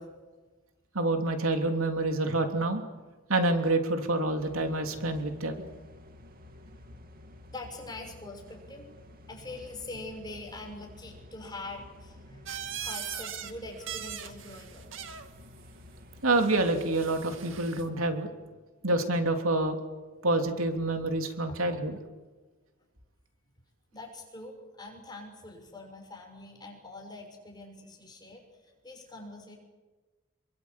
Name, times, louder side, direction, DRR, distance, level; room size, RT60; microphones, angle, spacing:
voice 1, 0.9-2.8 3.3-5.5 16.2-18.3 18.8-19.8 20.2-22.0, right 2 dB, 85° right, 5 dB, 3.1 m, -27 dB
sound 1, 4.4-17.6, left 1 dB, 45° right, 2.4 m, -51 dB
voice 2, 7.5-14.8 21.5-21.6 23.9-29.6, left 2 dB, 20° left, 1 dB, 6.6 m, -44 dB
sound 2, 12.5-13.5 13.8-15.3 16.3-17.9, right 9 dB, 65° right, 2.3 m, -40 dB
28.0 x 23.5 x 8.3 m, 1.3 s
head